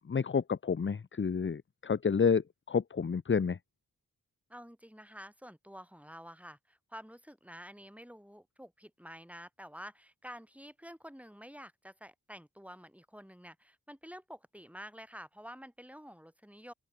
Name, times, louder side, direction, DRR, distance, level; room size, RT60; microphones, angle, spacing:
voice 1, 0.1-3.6, left 6 dB, 35° left, 0.5 m, -29 dB
voice 2, 4.5-16.7, equal, 5° right, 6.9 m, -49 dB
open air
wide cardioid pair, 60°, 37 cm